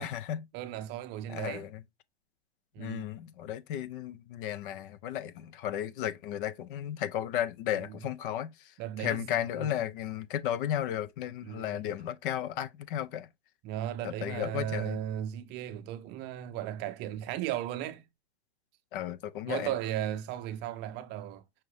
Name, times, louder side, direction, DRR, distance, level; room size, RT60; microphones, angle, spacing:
voice 1, 0.0-0.4 1.3-1.7 2.8-8.5 9.0-13.3 14.0-15.0 18.9-19.7, left 11 dB, 55° left, 0.5 m, -34 dB
voice 2, 0.5-1.7 2.7-3.1 7.8-7.9 8.8-9.7 11.4-11.8 13.6-18.0 19.5-21.4, right 11 dB, 35° right, 0.6 m, -36 dB
5.7 x 2.5 x 3.2 m
hypercardioid pair, 125°, 32 cm